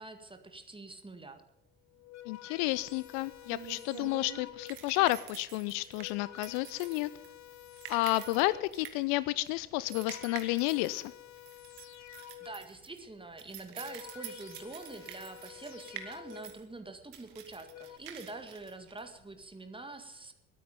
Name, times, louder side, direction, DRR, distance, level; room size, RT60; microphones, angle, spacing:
voice 1, 0.0-1.4 12.4-20.3, right 2 dB, 10° right, 7 dB, 2.0 m, -45 dB
sound 1, 1.8-5.0 5.7-8.9 9.6-12.8 13.5-16.7 17.4-18.0, left 12 dB, 40° left, 1.1 m, -51 dB
voice 2, 2.3-7.1 7.9-11.1, left 19 dB, 55° left, 19 dB, 0.5 m, -31 dB
sound 2, 2.7-19.5, right 10 dB, 60° right, 2.0 m, -48 dB
22.0 x 9.3 x 5.3 m, 0.95 s
figure-of-eight pair, 55°, 42 cm